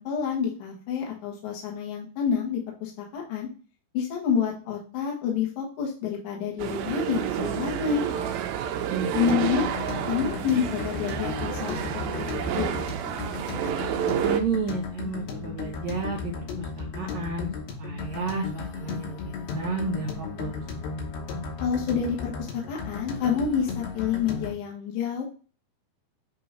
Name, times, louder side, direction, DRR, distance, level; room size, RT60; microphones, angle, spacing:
voice 1, 0.0-3.5 3.9-8.0 9.1-9.7 10.1-11.8 12.1-12.7 21.6-25.2, left 7 dB, 60° left, -2 dB, 2.6 m, -28 dB
sound 1, 6.6-14.4, right 9 dB, 90° right, 2.5 m, -29 dB
voice 2, 8.9-9.5 14.2-17.5 17.8-20.6, right 4 dB, 70° right, -1 dB, 1.7 m, -32 dB
sound 2, 9.1-24.5, left 4 dB, 85° left, 3.0 m, -35 dB
8.6 x 2.9 x 3.8 m, 0.36 s
omnidirectional pair, 4.2 m